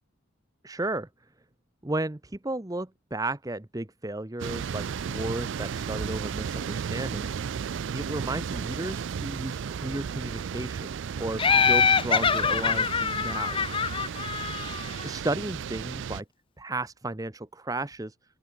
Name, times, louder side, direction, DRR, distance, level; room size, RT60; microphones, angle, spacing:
voice 1, 0.6-1.1 1.8-7.4 7.9-10.9 11.2-13.6 15.0-16.2 16.6-18.2, right 2 dB, 15° right, 0.8 m, -34 dB
sound 1, 4.4-16.2, right 7 dB, 55° right, 0.3 m, -34 dB
Laughter, 11.4-15.0, left 6 dB, 25° left, 0.5 m, -24 dB
open air
head